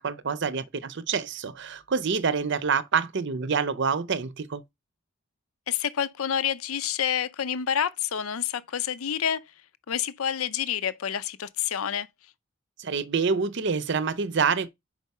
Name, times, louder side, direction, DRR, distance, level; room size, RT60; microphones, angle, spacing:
voice 1, 0.0-4.6 12.8-14.7, right 5 dB, 55° right, 0.6 m, -27 dB
voice 2, 5.7-9.4 9.9-12.1, left 9 dB, 80° left, 0.6 m, -28 dB
5.0 x 4.7 x 5.4 m
head